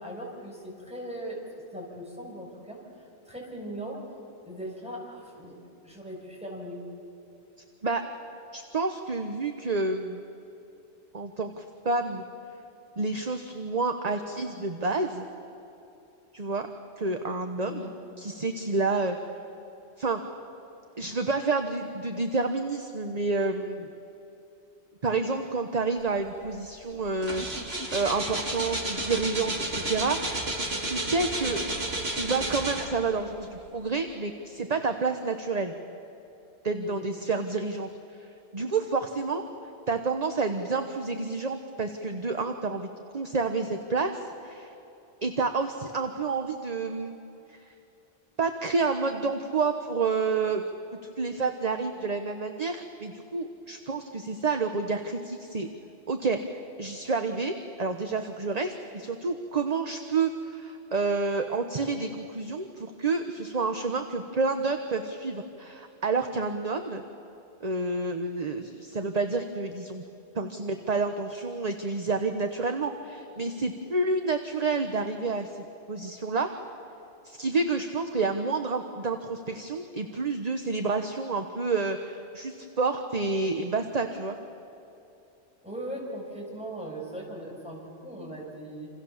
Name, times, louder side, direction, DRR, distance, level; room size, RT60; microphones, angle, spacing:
voice 1, 0.0-1.4 1.7-2.8 3.2-4.0 4.4-5.6 5.8-6.8 17.6-17.9 36.8-36.9 85.6-88.9, right 1 dB, 5° right, -2 dB, 6.5 m, -39 dB
voice 2, 8.5-10.2 11.1-12.2 13.0-15.3 16.3-16.7 17.0-17.8 18.2-19.2 20.0-20.2 21.0-23.9 25.0-27.4 27.9-30.2 30.8-31.7 32.1-35.7 36.6-37.9 38.2-39.4 39.9-42.9 43.1-44.7 45.2-47.2 47.5-47.6 48.4-50.6 51.2-55.7 56.1-56.4 56.8-67.0 67.6-70.0 70.3-76.5 77.2-84.4, right 3 dB, 35° right, 6 dB, 1.2 m, -29 dB
sound 1, 26.4-26.6 26.9-33.2 33.8-33.9, right 1 dB, 65° right, 3.1 m, -32 dB
28.0 x 27.0 x 7.3 m, 2.9 s
omnidirectional pair, 1.1 m